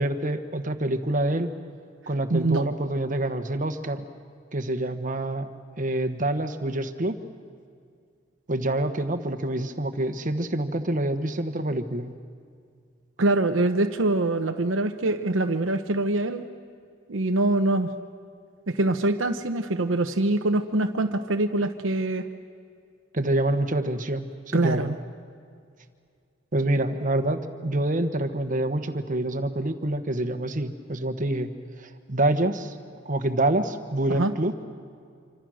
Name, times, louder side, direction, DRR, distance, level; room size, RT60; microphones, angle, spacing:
voice 1, 0.0-1.5 2.1-4.0 4.5-5.5 5.8-7.2 8.5-12.1 23.1-24.9 26.5-31.5 31.8-32.8 33.0-34.5, right 1 dB, 45° right, 8 dB, 1.3 m, -26 dB
voice 2, 2.3-2.6 13.2-16.5 17.1-17.9 18.7-22.3 24.5-24.9 34.1-34.3, right 2 dB, 90° right, 5 dB, 1.0 m, -24 dB
27.0 x 26.0 x 6.4 m, 2.2 s
head